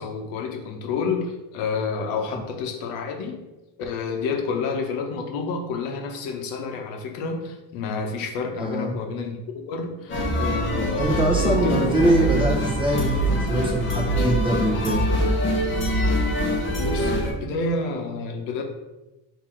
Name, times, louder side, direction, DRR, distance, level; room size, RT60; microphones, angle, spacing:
voice 1, 0.0-3.5 3.8-11.8 12.2-12.5 13.3-13.6 14.2-14.3 16.2-16.4 16.8-18.6, left 4 dB, 75° left, 3 dB, 0.9 m, -29 dB
voice 2, 8.6-8.9 11.0-15.0, right 1 dB, 10° right, -2 dB, 0.6 m, -23 dB
sound 1, 10.1-17.3, equal, 25° left, 0.7 m, -24 dB
3.7 x 2.9 x 4.3 m, 1.0 s
cardioid pair, 140°, 43 cm